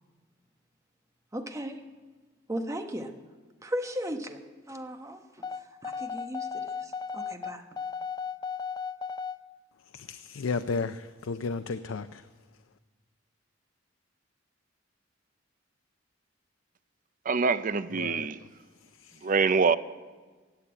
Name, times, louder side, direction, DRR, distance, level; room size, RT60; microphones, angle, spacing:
voice 1, 1.3-1.8 2.5-3.1 3.6-4.4 4.7-7.6, equal, 15° right, 1.0 m, -36 dB
sound 1, 5.4-9.4, left 6 dB, 20° left, 0.4 m, -35 dB
voice 2, 9.9-12.3 17.9-18.5 18.8-19.3, left 4 dB, 90° left, 0.5 m, -34 dB
voice 3, 17.3-18.4 19.2-19.8, right 5 dB, 45° right, 0.5 m, -25 dB
15.0 x 8.3 x 8.8 m
head